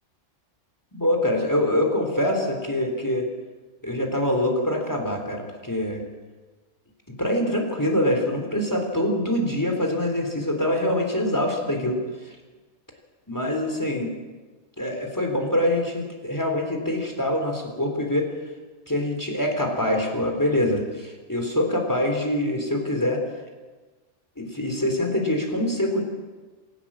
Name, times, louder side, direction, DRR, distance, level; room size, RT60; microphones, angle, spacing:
voice 1, 0.9-3.3 3.8-6.0 7.2-12.0 12.3-12.4 13.3-14.1 14.8-18.3 18.9-23.2 24.4-26.0, left 1 dB, 15° left, 2 dB, 3.5 m, -24 dB
26.0 x 12.0 x 8.7 m, 1.3 s
omnidirectional pair, 1.3 m